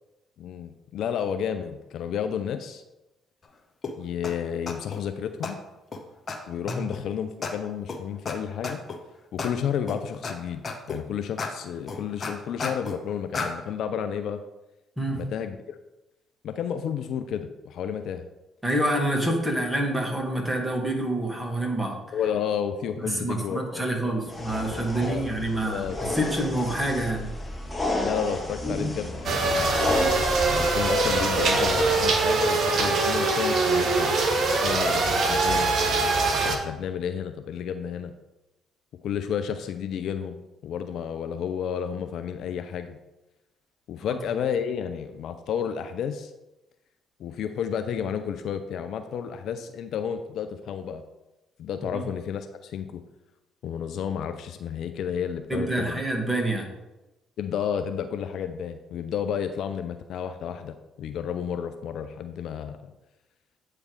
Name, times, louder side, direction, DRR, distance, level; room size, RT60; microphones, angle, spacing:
voice 1, 0.4-2.8 4.0-5.6 6.5-8.8 9.3-10.6 10.9-14.4 15.1-15.8 16.4-18.3 22.1-24.1 24.5-24.8 25.1-25.3 25.5-26.3 28.0-29.7 30.4-34.2 34.6-35.7 36.4-38.1 39.0-40.4 40.6-43.0 43.9-46.3 47.2-51.0 51.6-53.0 53.6-56.0 57.4-62.9, left 8 dB, 65° left, 9 dB, 0.4 m, -31 dB
sound 1, 3.8-3.9 4.2-4.3 4.7-5.0 5.4-5.5 5.9-6.0 6.3-6.4 6.7-7.0 7.4-7.5 7.9-8.0 8.3-8.4 8.6-9.0 9.4-9.5 9.9-10.3 10.6-11.0 11.4-11.5 11.9-13.0 13.3-13.5, left 4 dB, 40° left, 1.0 m, -32 dB
voice 2, 18.6-22.2 23.0-27.3 51.9-52.0 55.5-56.7, right 1 dB, 10° right, 0 dB, 2.0 m, -27 dB
sound 2, 24.3-32.2, left 1 dB, 15° left, 1.5 m, -32 dB
sound 3, 29.2-36.6, right 3 dB, 55° right, 1.1 m, -23 dB
8.4 x 3.3 x 4.7 m, 1.0 s
hypercardioid pair, 45°, 0 cm